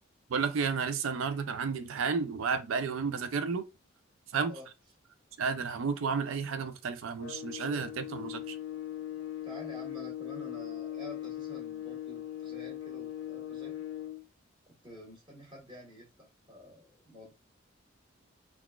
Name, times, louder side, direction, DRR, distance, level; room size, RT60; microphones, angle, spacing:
voice 1, 0.3-3.7 4.3-4.5 5.4-8.6, right 5 dB, 75° right, 0.4 m, -32 dB
sound 1, 7.2-14.3, left 12 dB, 70° left, 0.4 m, -40 dB
voice 2, 9.4-13.8 14.7-17.4, equal, 25° right, 1.3 m, -49 dB
3.9 x 2.4 x 2.2 m
head